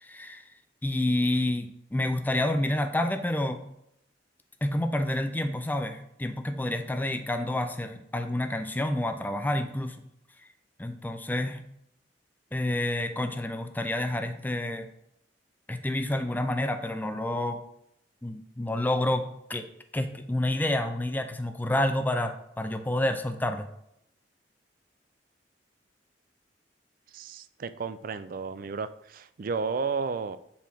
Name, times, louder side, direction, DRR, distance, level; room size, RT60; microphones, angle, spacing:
voice 1, 0.0-0.4 0.8-3.7 4.6-10.0 10.8-11.6 12.5-14.9 15.7-17.6 18.2-19.7 19.9-23.7, left 1 dB, 10° left, 7 dB, 0.4 m, -29 dB
voice 2, 27.1-30.4, right 5 dB, 50° right, 12 dB, 0.4 m, -32 dB
7.5 x 4.7 x 3.5 m, 0.79 s
head